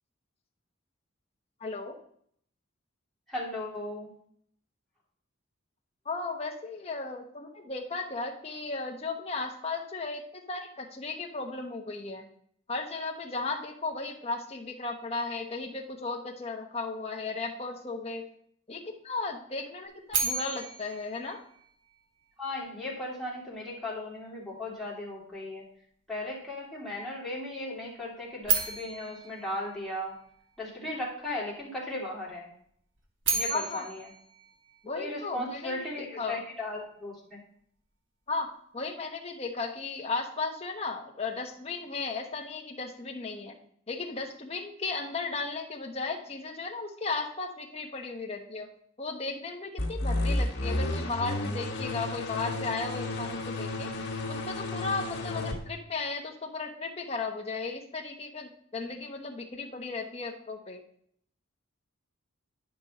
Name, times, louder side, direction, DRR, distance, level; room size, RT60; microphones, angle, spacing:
voice 1, 1.6-2.0 6.0-12.3 12.7-18.2 18.7-21.4 33.5-33.9 34.8-36.4 38.3-38.5 38.7-43.5 43.9-48.7 49.0-53.9 54.3-60.8, left 3 dB, 30° left, 1 dB, 1.2 m, -35 dB
voice 2, 3.3-4.1 22.4-25.6 26.1-30.1 30.6-32.5 33.3-34.0 34.9-37.4, left 1 dB, ahead, -6 dB, 2.7 m, -36 dB
sound 1, 20.1-22.2 28.4-30.6 33.0-35.4, right 4 dB, 60° right, 1.7 m, -33 dB
sound 2, 49.8-55.6, left 1 dB, 50° left, 1.7 m, -32 dB
10.5 x 5.3 x 4.2 m, 0.64 s
head